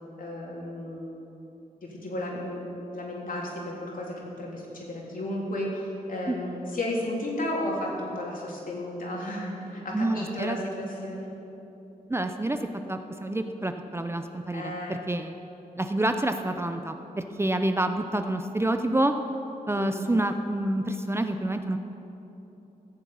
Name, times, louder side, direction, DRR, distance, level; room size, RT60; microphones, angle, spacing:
voice 1, 0.2-1.1 1.8-11.3 14.5-15.0 19.8-20.0, left 1 dB, 65° left, -3 dB, 3.5 m, -33 dB
voice 2, 9.9-10.6 12.1-12.6 12.9-15.3 15.8-19.1 19.7-21.8, right 1 dB, 15° right, 7 dB, 0.7 m, -28 dB
14.5 x 7.2 x 8.6 m, 3.0 s
cardioid pair, 70°, 15 cm